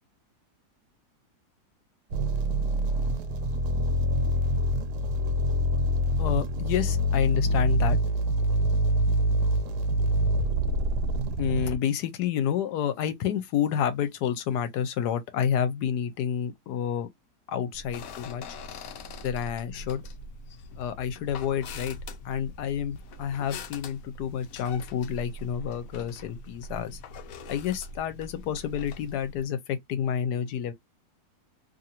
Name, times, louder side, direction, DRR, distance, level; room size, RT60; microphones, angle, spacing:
sound 1, 2.1-11.8, equal, 85° right, 1.2 m, -25 dB
voice 1, 6.2-8.0 11.4-17.1 17.5-18.4 19.2-20.0 20.8-22.0 22.2-27.0 27.5-30.7, left 9 dB, 85° left, 1.2 m, -29 dB
sound 2, 17.7-29.5, left 2 dB, 70° left, 0.9 m, -42 dB
2.8 x 2.6 x 2.8 m
omnidirectional pair, 1.7 m